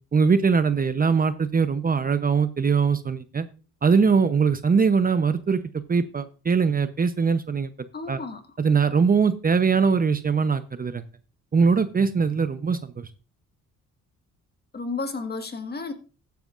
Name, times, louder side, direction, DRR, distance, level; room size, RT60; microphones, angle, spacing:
voice 1, 0.1-3.5 3.8-5.6 5.9-7.7 8.1-8.2 8.6-11.0 11.5-13.1, right 5 dB, 30° right, 0.8 m, -21 dB
voice 2, 7.9-8.4 14.7-15.9, left 3 dB, 35° left, 1.7 m, -32 dB
14.0 x 9.4 x 2.5 m
cardioid pair, 90°, 30 cm